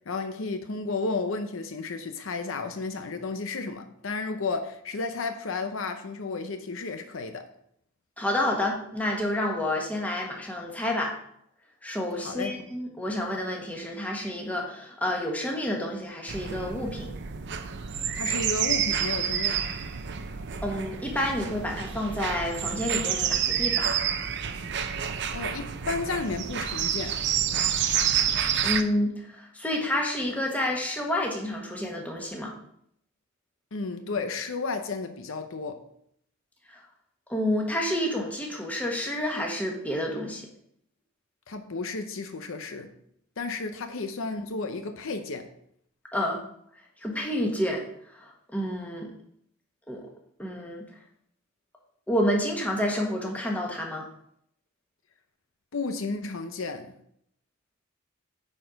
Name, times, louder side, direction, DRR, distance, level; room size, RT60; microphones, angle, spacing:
voice 1, 0.1-7.5 12.2-12.6 18.1-19.7 25.3-27.2 33.7-35.8 41.5-42.9 43.4-45.5 55.7-56.9, left 3 dB, 70° left, 0.7 m, -32 dB
voice 2, 8.2-11.2 11.8-17.1 20.6-23.9 28.6-32.5 36.7-36.8 37.3-40.4 46.1-46.4 47.0-47.8 48.2-49.1 49.9-50.1 50.4-50.9 52.1-54.1, left 1 dB, 5° left, 1.4 m, -29 dB
sound 1, 16.3-28.8, right 8 dB, 60° right, 0.6 m, -29 dB
8.9 x 4.4 x 5.1 m
head